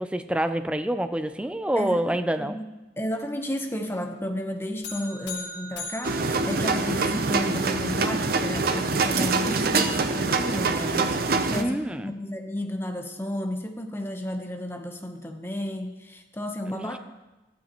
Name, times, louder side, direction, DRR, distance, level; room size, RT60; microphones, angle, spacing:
voice 1, 0.0-2.6 11.4-12.1 16.7-16.9, right 1 dB, 5° right, 9 dB, 0.4 m, -27 dB
voice 2, 1.8-2.7 3.0-17.0, left 1 dB, 15° left, 4 dB, 0.8 m, -33 dB
sound 1, 4.8-7.3, left 2 dB, 80° left, 2.6 m, -39 dB
sound 2, 6.0-11.6, right 3 dB, 55° right, 0.6 m, -25 dB
14.5 x 11.0 x 3.0 m, 1.0 s
head